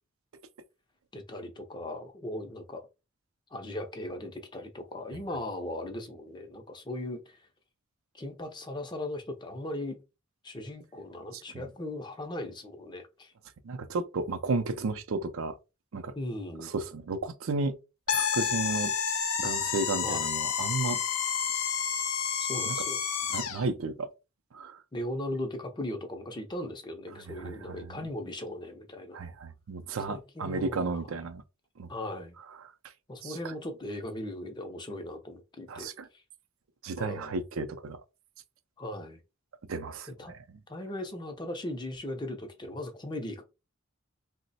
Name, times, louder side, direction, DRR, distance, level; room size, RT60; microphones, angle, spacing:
voice 1, 1.1-2.9 3.5-7.4 8.1-10.0 10.4-13.3 16.1-16.7 20.0-20.3 22.5-23.0 24.9-29.3 30.1-30.9 31.9-32.3 33.1-35.9 37.0-37.4 38.8-39.2 40.2-40.3 40.7-43.4, left 1 dB, 20° left, 0.5 m, -38 dB
voice 2, 13.6-15.6 15.9-16.1 16.6-17.8 18.1-18.9 19.4-21.0 22.6-22.8 23.3-24.1 24.5-24.8 27.1-28.1 29.1-31.4 31.8-31.9 32.5-32.7 33.2-33.5 35.7-36.1 36.8-38.0 39.7-40.6, right 3 dB, 70° right, 0.5 m, -33 dB
sound 1, 18.1-23.6, left 7 dB, 75° left, 0.6 m, -30 dB
3.0 x 2.1 x 4.0 m
head